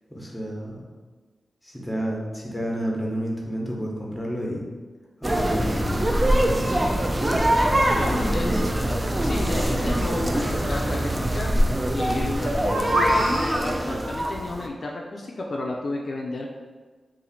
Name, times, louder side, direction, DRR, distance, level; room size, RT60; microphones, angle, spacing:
voice 1, 0.1-0.8 1.6-4.6 5.2-6.9 8.0-8.7, equal, 10° left, -2 dB, 0.9 m, -31 dB
sound 1, 5.2-14.7, right 1 dB, 25° right, 0.4 m, -23 dB
voice 2, 7.5-8.5 9.2-11.5 11.9-16.5, left 2 dB, 60° left, -1 dB, 0.3 m, -32 dB
2.7 x 2.5 x 4.1 m, 1.4 s
cardioid pair, 55°, 0 cm